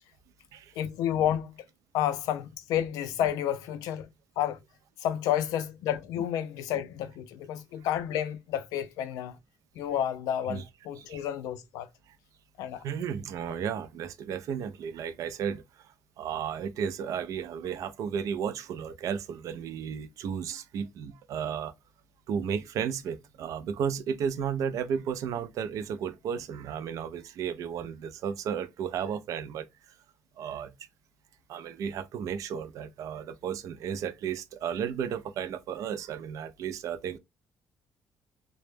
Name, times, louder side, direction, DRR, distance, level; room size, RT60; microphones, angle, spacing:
voice 1, 0.8-1.6 1.9-4.1 4.4-4.6 5.0-9.4 9.7-11.9 12.6-12.8, left 10 dB, 85° left, 0.4 m, -30 dB
voice 2, 12.8-21.7 22.3-29.9 30.4-30.7 31.5-37.2, right 7 dB, 65° right, 0.3 m, -34 dB
2.1 x 2.0 x 3.1 m
cardioid pair, 100°, 6 cm